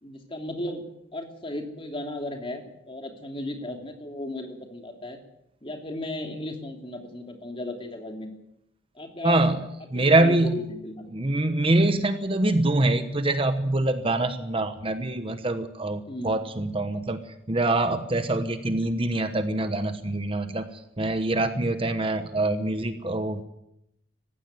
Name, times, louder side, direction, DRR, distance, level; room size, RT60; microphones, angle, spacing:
voice 1, 0.0-0.8 1.1-5.2 5.6-8.3 9.0-9.4 9.9-11.1 16.1-16.3, left 1 dB, 30° left, 4 dB, 3.0 m, -35 dB
voice 2, 9.2-9.7 9.9-10.6 11.1-17.2 17.5-20.7 21.0-23.4, right 2 dB, 30° right, 9 dB, 1.1 m, -24 dB
19.0 x 15.5 x 9.4 m, 0.83 s
head